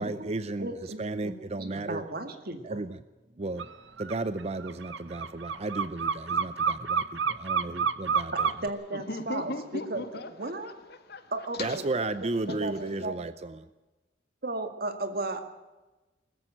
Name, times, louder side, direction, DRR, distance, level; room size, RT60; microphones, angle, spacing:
voice 1, 0.0-2.0 2.6-3.0 3.4-3.7 4.0-8.5 11.6-13.7, right 2 dB, 35° right, 14 dB, 0.6 m, -34 dB
voice 2, 0.6-2.8 8.6-10.0 10.4-10.7 11.3-13.2 14.4-15.4, right 2 dB, 55° right, 8 dB, 2.0 m, -35 dB
sound 1, 3.6-3.7 4.0-8.7, right 6 dB, 80° right, 0.8 m, -28 dB
voice 3, 8.9-11.9 12.5-13.0, left 2 dB, 60° left, 8 dB, 2.0 m, -39 dB
21.0 x 14.0 x 9.0 m, 1.1 s
head